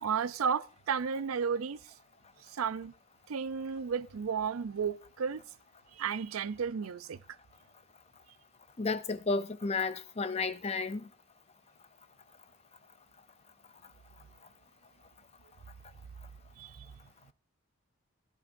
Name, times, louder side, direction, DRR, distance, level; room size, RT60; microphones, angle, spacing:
voice 1, 0.0-1.9 2.4-2.9 3.3-5.4 5.9-7.2 16.6-16.9, right 6 dB, 85° right, 0.5 m, -33 dB
voice 2, 8.8-11.0, left 4 dB, 30° left, 0.5 m, -32 dB
17.0 x 12.0 x 2.6 m
head